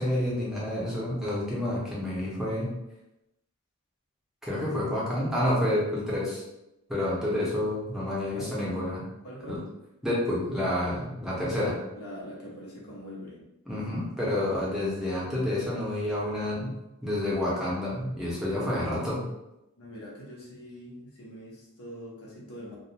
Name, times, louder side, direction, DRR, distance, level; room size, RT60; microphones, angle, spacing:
voice 1, 0.0-2.8 4.5-6.4 6.9-9.0 9.5-9.6 10.0-11.7 13.7-16.7 17.0-19.3, left 1 dB, ahead, -7 dB, 0.6 m, -29 dB
voice 2, 9.2-9.6 11.5-13.4 19.8-22.8, equal, 80° left, -4 dB, 0.9 m, -43 dB
2.3 x 2.2 x 2.7 m, 0.91 s
head